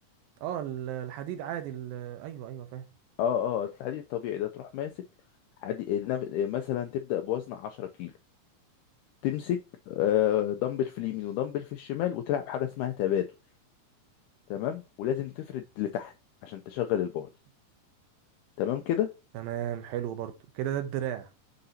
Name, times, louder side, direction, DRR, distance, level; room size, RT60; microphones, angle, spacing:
voice 1, 0.4-2.9 19.3-21.3, right 11 dB, 85° right, 2.5 m, -34 dB
voice 2, 3.2-4.9 5.6-8.1 9.2-9.6 9.9-13.3 14.5-16.1 16.4-17.3 18.6-19.1, left 11 dB, 85° left, 1.8 m, -30 dB
9.7 x 3.8 x 2.7 m
omnidirectional pair, 4.1 m